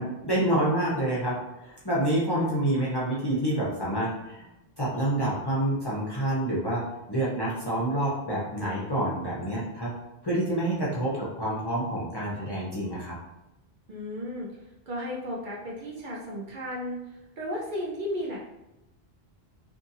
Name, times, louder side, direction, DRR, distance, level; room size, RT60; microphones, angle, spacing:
voice 1, 0.0-4.5 4.8-6.8 7.1-9.9 10.2-13.2, right 1 dB, 30° left, -7 dB, 0.5 m, -28 dB
voice 2, 13.9-14.6 14.9-18.4, equal, 55° right, -3 dB, 0.7 m, -34 dB
2.6 x 2.6 x 2.6 m, 0.93 s
omnidirectional pair, 1.0 m